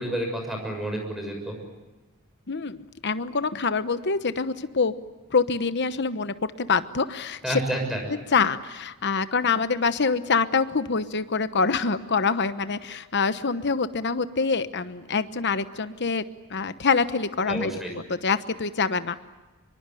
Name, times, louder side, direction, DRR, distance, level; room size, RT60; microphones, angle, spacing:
voice 1, 0.0-1.6 7.4-8.0 17.5-17.9, right 1 dB, ahead, 2 dB, 6.8 m, -29 dB
voice 2, 2.5-4.9 5.3-7.6 8.3-19.2, left 4 dB, 55° left, 12 dB, 1.1 m, -25 dB
25.0 x 23.5 x 9.2 m, 1.2 s
head